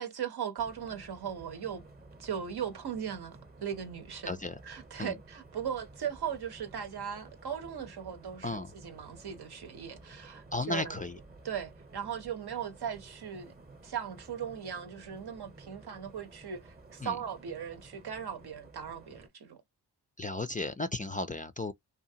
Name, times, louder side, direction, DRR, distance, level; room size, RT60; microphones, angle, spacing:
voice 1, 0.0-1.9 2.2-11.0 11.4-13.5 13.8-19.6, right 8 dB, 65° right, 0.8 m, -38 dB
sound 1, 0.6-19.3, right 2 dB, 20° right, 0.8 m, -54 dB
voice 2, 10.5-11.2 17.0-17.2 20.2-21.7, left 2 dB, 20° left, 0.3 m, -34 dB
2.8 x 2.3 x 2.6 m
cardioid pair, 45°, 42 cm